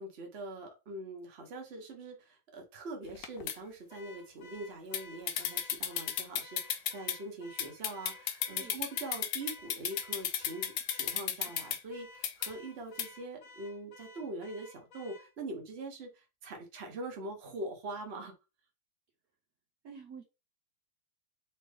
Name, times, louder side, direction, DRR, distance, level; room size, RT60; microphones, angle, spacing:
voice 1, 0.0-18.3, right 2 dB, 45° right, 1.2 m, -43 dB
sound 1, 3.1-3.5 4.9-5.0 5.3-7.2 7.6-11.8 12.2-12.5 13.0-13.1, left 10 dB, 90° left, 1.2 m, -34 dB
Car / Alarm, 3.9-15.3, left 3 dB, 60° left, 1.0 m, -54 dB
voice 2, 8.5-8.8 11.3-11.5 19.8-20.2, right 6 dB, 65° right, 1.2 m, -49 dB
4.2 x 2.9 x 3.4 m
omnidirectional pair, 1.8 m